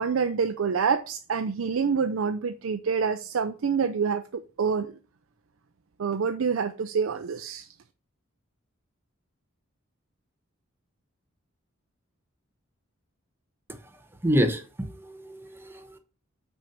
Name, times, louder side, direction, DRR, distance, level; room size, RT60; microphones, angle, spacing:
voice 1, 0.0-4.9 6.0-7.7, right 6 dB, 75° right, 0.5 m, -27 dB
voice 2, 14.2-16.0, equal, 10° right, 1.0 m, -27 dB
6.1 x 4.5 x 5.1 m
head